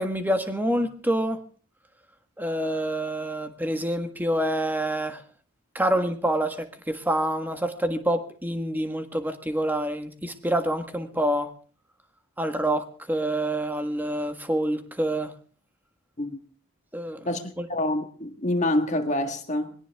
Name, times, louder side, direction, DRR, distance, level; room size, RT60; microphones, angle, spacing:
voice 1, 0.0-1.4 2.4-5.2 5.7-11.5 12.4-15.3 16.9-17.3 17.6-17.7, right 1 dB, 10° right, 1.5 m, -27 dB
voice 2, 17.2-19.7, left 1 dB, 35° left, 1.7 m, -27 dB
21.5 x 17.5 x 3.5 m
head